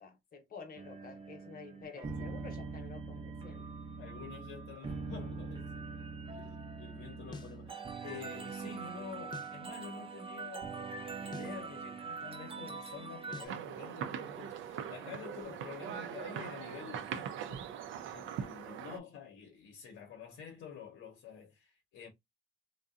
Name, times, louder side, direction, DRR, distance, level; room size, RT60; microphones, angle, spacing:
voice 1, 0.0-3.7, left 5 dB, 45° left, 0.8 m, -50 dB
sound 1, 0.8-13.5, right 4 dB, 30° right, 0.5 m, -43 dB
voice 2, 1.9-2.4 4.0-5.9 6.3-17.7 18.1-22.1, left 6 dB, 80° left, 0.8 m, -49 dB
sound 2, 7.3-7.6 9.3-9.6 11.3-11.6 13.3-13.6, left 4 dB, 20° left, 0.4 m, -47 dB
sound 3, 13.5-19.0, right 8 dB, 80° right, 0.5 m, -41 dB
2.6 x 2.2 x 2.4 m
cardioid pair, 90°, 20 cm